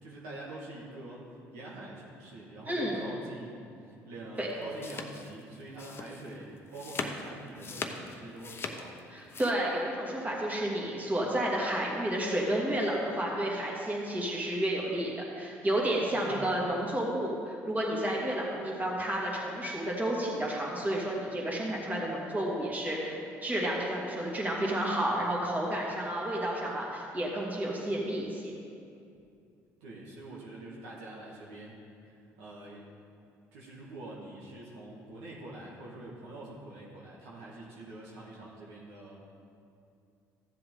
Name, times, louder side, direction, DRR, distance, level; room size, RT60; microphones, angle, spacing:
voice 1, 0.0-3.7 4.0-9.0 16.1-16.4 29.8-32.9 33.5-39.2, right 2 dB, 90° right, -4 dB, 1.7 m, -45 dB
voice 2, 2.7-3.0 4.4-4.5 9.1-23.2 23.4-28.5, right 1 dB, 25° right, -3 dB, 2.6 m, -31 dB
sound 1, 4.3-9.5, left 4 dB, 35° left, 0.9 m, -40 dB
14.0 x 7.6 x 3.9 m, 2.5 s
supercardioid pair, 75°, 7 cm